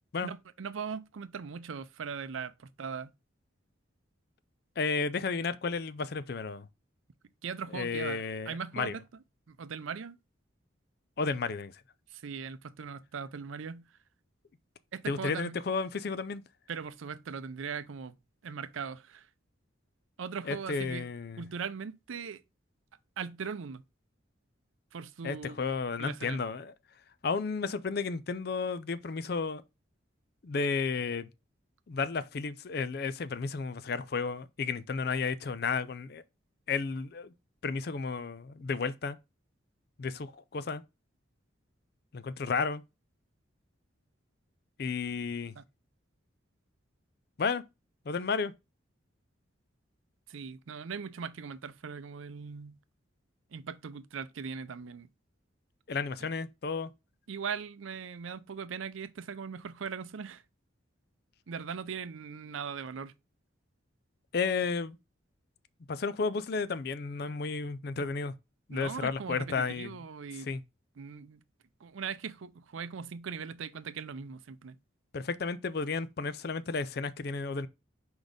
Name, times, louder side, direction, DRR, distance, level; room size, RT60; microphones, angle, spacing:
voice 1, 0.2-3.1 7.4-9.0 9.5-10.2 12.1-13.8 14.9-15.6 16.7-18.1 18.4-19.3 20.2-21.1 21.4-22.4 23.2-23.8 24.9-25.6 26.0-26.4 45.6-45.7 50.3-52.8 53.5-55.1 57.3-60.4 61.5-63.1 68.7-70.5 71.0-71.4 71.8-74.8, right 6 dB, 80° right, 0.5 m, -39 dB
voice 2, 4.8-6.7 7.7-9.0 11.2-11.8 15.1-16.4 20.5-21.5 25.2-26.7 27.2-29.6 30.4-31.3 31.9-36.2 36.7-37.3 37.6-39.2 40.0-40.8 42.1-42.8 44.8-45.5 47.4-47.6 48.1-48.5 55.9-56.9 64.3-65.0 65.9-68.3 68.7-70.0 70.4-70.6 75.1-77.7, left 4 dB, 50° left, 0.4 m, -32 dB
4.8 x 4.1 x 5.0 m
head